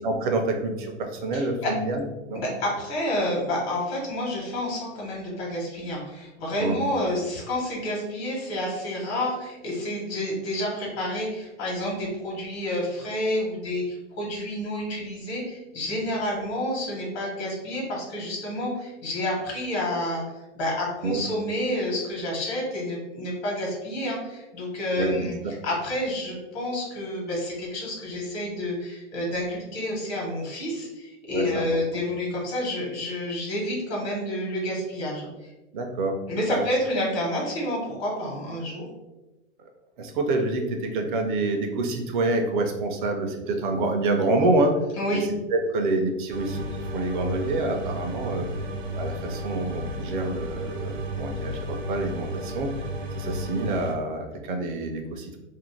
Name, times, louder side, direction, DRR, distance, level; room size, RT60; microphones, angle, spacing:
voice 1, 0.0-2.4 6.6-6.8 21.0-21.2 25.0-25.6 31.3-31.6 35.7-36.2 36.5-36.6 40.0-44.7 45.1-48.5 48.9-52.7 53.1-55.4, right 2 dB, 45° right, 4 dB, 0.5 m, -27 dB
voice 2, 1.3-1.7 2.3-20.2 20.5-25.3 25.6-35.5 36.3-38.9 45.0-45.3, left 1 dB, 55° left, -3 dB, 1.1 m, -29 dB
sound 1, 46.3-53.9, equal, 85° right, 0.7 m, -33 dB
2.5 x 2.0 x 3.1 m, 1.1 s
hypercardioid pair, 135°, 37 cm